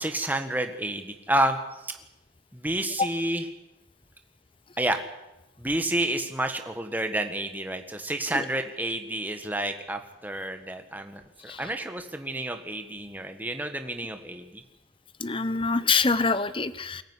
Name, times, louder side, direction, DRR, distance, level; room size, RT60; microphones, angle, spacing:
voice 1, 0.0-1.6 1.8-2.0 2.5-3.5 4.8-5.0 5.6-14.6, right 1 dB, 10° right, 6 dB, 1.6 m, -30 dB
voice 2, 15.2-17.0, left 4 dB, 25° left, 14 dB, 0.9 m, -25 dB
23.0 x 14.5 x 9.9 m, 0.95 s
head